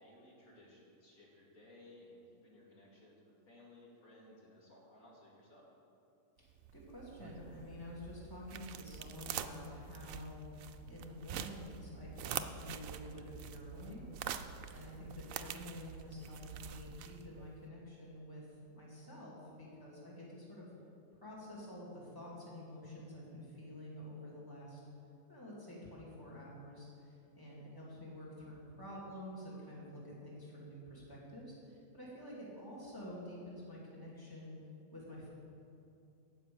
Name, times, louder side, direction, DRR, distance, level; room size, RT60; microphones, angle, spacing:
voice 1, 0.0-5.7, left 1 dB, 85° left, -4 dB, 2.8 m, -59 dB
sound 1, 6.5-17.5, right 9 dB, 75° right, 1.0 m, -46 dB
voice 2, 6.7-10.5 10.9-14.0 14.7-18.4 18.7-20.7 21.2-24.8 25.3-34.6 34.9-35.3, left 1 dB, 15° left, -5 dB, 2.5 m, -49 dB
12.5 x 5.8 x 8.4 m, 2.7 s
omnidirectional pair, 1.4 m